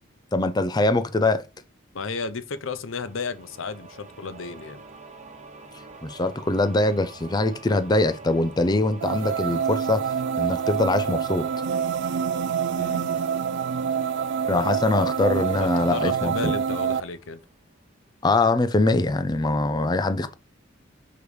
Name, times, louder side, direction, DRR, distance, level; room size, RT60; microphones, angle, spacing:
voice 1, 0.3-1.4 6.0-10.0 10.4-11.5 14.5-16.5 18.2-20.3, left 2 dB, 20° left, 0.4 m, -23 dB
voice 2, 1.9-4.8 12.8-13.1 15.6-17.4, left 4 dB, 80° left, 0.7 m, -33 dB
sound 1, 3.1-17.7, right 3 dB, 35° right, 1.2 m, -45 dB
sound 2, 9.0-17.0, right 7 dB, 60° right, 0.3 m, -26 dB
6.7 x 3.1 x 4.9 m
head